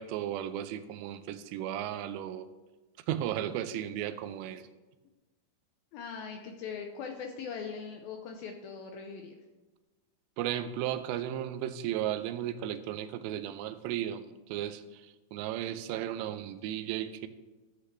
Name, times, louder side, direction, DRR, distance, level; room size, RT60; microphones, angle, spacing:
voice 1, 0.0-2.5 3.1-4.7 10.4-15.0 15.3-17.3, right 11 dB, 90° right, 11 dB, 2.8 m, -35 dB
voice 2, 5.9-9.4, left 6 dB, 80° left, 3 dB, 2.2 m, -41 dB
13.5 x 8.4 x 3.3 m, 1.2 s
omnidirectional pair, 4.9 m